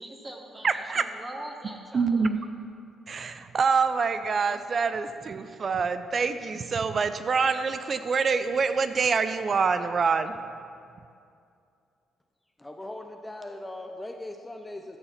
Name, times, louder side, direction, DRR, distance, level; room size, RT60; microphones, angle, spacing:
voice 1, 0.0-2.1, right 1 dB, 20° right, 2 dB, 1.2 m, -42 dB
voice 2, 0.6-1.1 1.9-2.4 3.1-10.3, right 5 dB, 45° right, 11 dB, 0.6 m, -26 dB
voice 3, 12.6-15.0, left 1 dB, 10° left, 4 dB, 0.7 m, -39 dB
13.0 x 7.0 x 5.8 m, 2.4 s
cardioid pair, 90°, 0 cm